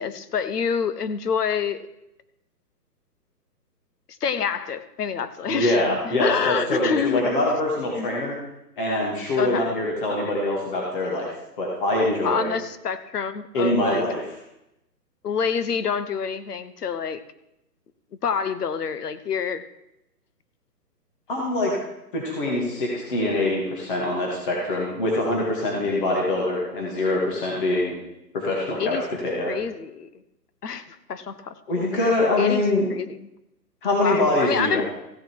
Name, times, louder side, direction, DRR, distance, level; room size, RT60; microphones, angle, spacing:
voice 1, 0.0-1.8 4.2-7.3 8.0-8.1 9.4-9.8 12.2-14.0 15.2-17.2 18.2-19.7 28.8-29.0 29.4-30.1 30.6-30.8 31.1-31.9 32.4-32.6 32.9-33.3 34.0-34.8, left 6 dB, 65° left, 13 dB, 1.0 m, -27 dB
voice 2, 5.5-8.4 8.8-11.3 11.6-12.5 13.5-14.3 21.3-21.7 22.1-27.9 28.3-29.0 29.2-29.5 31.7-32.9 33.8-34.8, left 1 dB, 30° left, -2 dB, 2.2 m, -24 dB
15.0 x 7.3 x 4.6 m, 0.87 s
hypercardioid pair, 170°, 49 cm